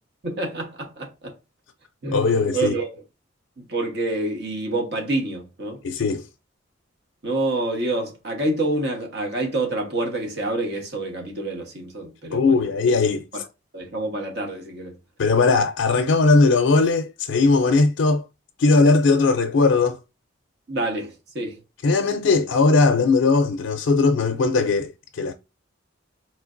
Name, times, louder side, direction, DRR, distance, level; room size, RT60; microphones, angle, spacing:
voice 1, 0.2-1.4 2.0-2.9 3.6-5.8 7.2-12.7 13.3-13.4 13.7-15.0 20.7-21.6, right 2 dB, 55° right, 1.1 m, -27 dB
voice 2, 2.1-2.7 5.8-6.3 12.3-13.4 15.2-18.2 18.6-20.0 21.8-25.3, left 3 dB, 85° left, 0.4 m, -19 dB
4.3 x 3.2 x 2.5 m
head